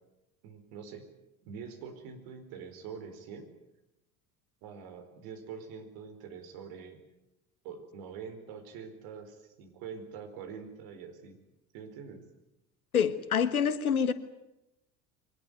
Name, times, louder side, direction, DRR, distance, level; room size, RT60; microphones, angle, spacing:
voice 1, 0.4-1.1 1.4-3.5 4.6-7.0 7.6-11.4 11.7-12.2, right 6 dB, 55° right, 7 dB, 4.6 m, -45 dB
voice 2, 12.9-14.1, left 7 dB, 80° left, 14 dB, 1.5 m, -26 dB
24.0 x 19.5 x 9.5 m, 0.91 s
figure-of-eight pair, 70°, 43 cm